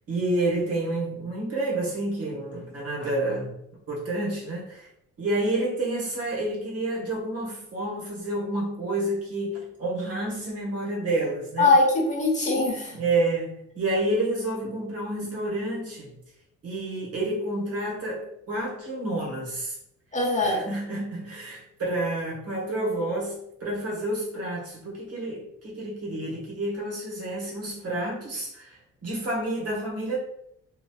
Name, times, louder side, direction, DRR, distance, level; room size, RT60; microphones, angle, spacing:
voice 1, 0.1-3.5 3.9-4.9 5.2-11.7 12.9-16.1 16.6-19.8 20.4-30.2, right 2 dB, 50° right, -4 dB, 1.3 m, -29 dB
voice 2, 11.6-12.9 20.1-20.6, left 2 dB, 25° left, -3 dB, 1.1 m, -21 dB
2.8 x 2.7 x 2.3 m, 0.77 s
cardioid pair, 90°, 30 cm